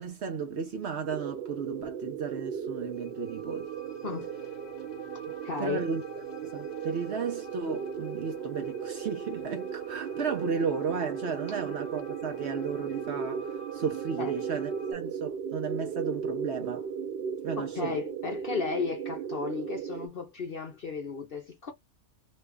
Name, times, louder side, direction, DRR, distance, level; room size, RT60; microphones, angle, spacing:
voice 1, 0.0-3.7 5.6-6.0 6.4-16.9 17.4-18.0, right 5 dB, 55° right, 0.9 m, -34 dB
sound 1, 1.1-20.1, right 7 dB, 90° right, 0.5 m, -36 dB
sound 2, 2.9-14.9, left 3 dB, 30° left, 1.2 m, -49 dB
voice 2, 5.2-5.9 14.2-14.3 17.6-21.7, left 5 dB, 50° left, 0.7 m, -34 dB
3.1 x 2.3 x 3.2 m
omnidirectional pair, 1.5 m